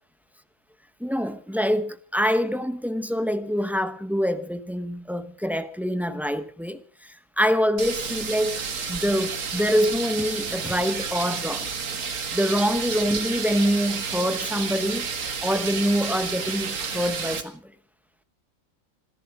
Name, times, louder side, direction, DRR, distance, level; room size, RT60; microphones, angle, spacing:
voice 1, 1.0-11.7 12.3-15.1 15.4-17.6, equal, ahead, 0.8 m, -25 dB
sound 1, 7.8-17.4, right 5 dB, 70° right, 1.8 m, -31 dB
27.5 x 11.0 x 4.8 m
omnidirectional pair, 1.4 m